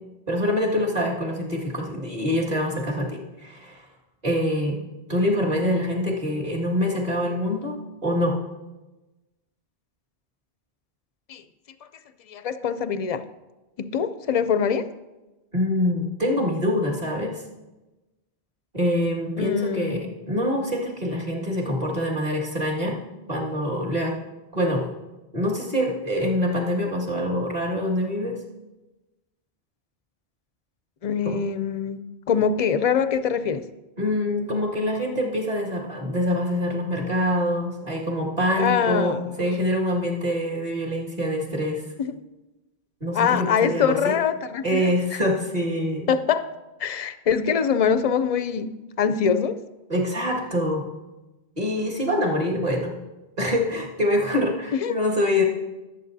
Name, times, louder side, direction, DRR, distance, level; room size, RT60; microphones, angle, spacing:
voice 1, 0.3-3.8 4.2-4.8 5.1-8.4 15.5-17.4 18.7-23.0 23.3-24.2 24.5-24.9 25.3-28.4 31.2-31.4 34.0-41.8 43.0-44.2 44.6-46.1 49.9-50.9 51.6-53.0 53.4-55.4, left 1 dB, 40° right, -4 dB, 2.0 m, -25 dB
voice 2, 12.3-13.2 13.8-14.9 19.4-20.0 31.0-32.0 32.3-33.6 38.6-39.3 42.0-42.1 43.1-45.2 46.1-46.5 46.8-49.6 54.8-55.0, left 7 dB, 50° left, 11 dB, 0.5 m, -23 dB
18.5 x 7.8 x 2.7 m, 1.1 s
omnidirectional pair, 1.1 m